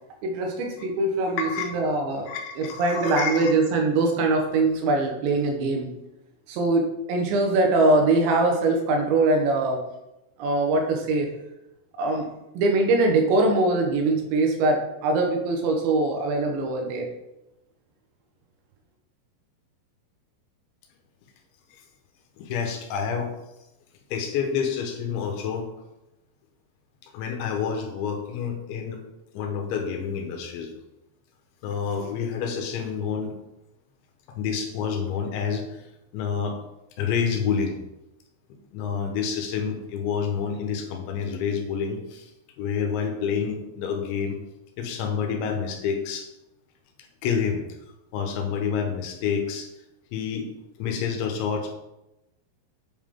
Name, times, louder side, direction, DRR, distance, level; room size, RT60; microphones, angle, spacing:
voice 1, 0.2-2.3 2.6-5.9 6.5-9.8 10.4-11.3 12.0-12.3 12.6-17.1, right 2 dB, 80° right, 2 dB, 3.6 m, -22 dB
voice 2, 1.4-1.7 2.3-3.5 22.4-23.3 24.1-25.7 27.1-29.0 29.3-30.7 31.6-33.3 34.4-35.7 36.1-36.6 37.0-37.8 38.7-42.3 42.6-44.4 44.8-46.3 47.2-47.6 48.1-49.7 50.1-50.5 50.8-51.7, left 6 dB, 85° left, 4 dB, 3.6 m, -28 dB
8.4 x 7.3 x 3.8 m, 0.93 s
omnidirectional pair, 5.2 m